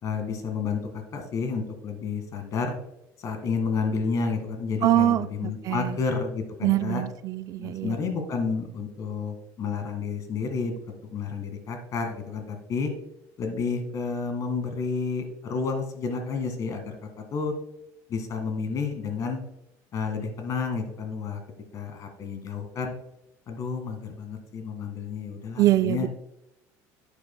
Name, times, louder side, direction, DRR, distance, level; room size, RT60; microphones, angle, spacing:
voice 1, 0.0-2.8 3.2-7.0 7.6-10.8 11.1-12.9 13.4-17.5 18.1-19.4 19.9-21.4 21.7-22.9 23.5-26.1, left 5 dB, 45° left, 5 dB, 1.8 m, -30 dB
voice 2, 4.8-6.0 6.6-8.0 25.6-26.1, right 13 dB, 50° right, 12 dB, 0.4 m, -24 dB
10.0 x 8.7 x 2.2 m, 0.84 s
cardioid pair, 140°, 8 cm